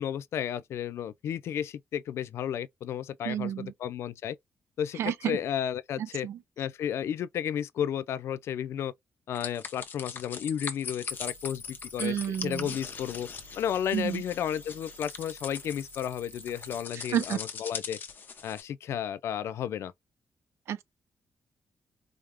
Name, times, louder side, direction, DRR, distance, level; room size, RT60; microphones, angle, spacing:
voice 1, 0.0-4.4 4.8-6.3 6.6-8.9 9.3-13.3 13.6-18.0 18.4-19.9, left 9 dB, 75° left, 0.3 m, -33 dB
voice 2, 3.3-3.7 5.0-5.4 6.0-6.4 12.0-12.7 13.9-14.2 17.1-17.4 20.7-20.8, right 10 dB, 80° right, 0.5 m, -30 dB
sound 1, 9.3-18.6, left 6 dB, 45° left, 0.7 m, -41 dB
sound 2, 11.1-16.9, right 2 dB, 10° right, 0.9 m, -52 dB
4.9 x 2.0 x 3.4 m
wide cardioid pair, 150°, 5 cm